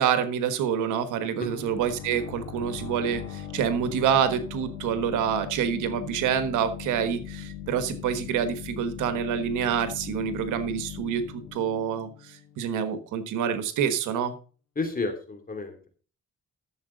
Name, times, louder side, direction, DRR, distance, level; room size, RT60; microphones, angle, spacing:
voice 1, 0.0-14.3, right 8 dB, 90° right, 10 dB, 1.4 m, -27 dB
sound 1, 1.4-12.9, left 10 dB, 50° left, 3.6 m, -40 dB
voice 2, 14.8-15.9, left 3 dB, 30° left, 6 dB, 3.0 m, -31 dB
12.0 x 7.3 x 4.0 m, 0.38 s
cardioid pair, 90°, 30 cm